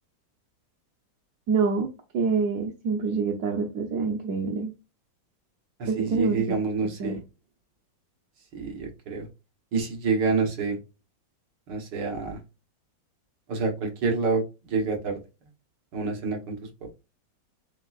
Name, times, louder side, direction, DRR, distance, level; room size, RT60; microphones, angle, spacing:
voice 1, 1.5-4.7 5.9-6.5 7.0-7.2, right 5 dB, 65° right, 0 dB, 1.1 m, -26 dB
voice 2, 5.8-7.2 8.5-9.3 9.7-10.8 11.7-12.4 13.5-14.4 14.7-15.2 15.9-16.6, right 4 dB, 85° right, 2 dB, 1.9 m, -27 dB
7.1 x 2.4 x 2.4 m, 0.27 s
omnidirectional pair, 1.9 m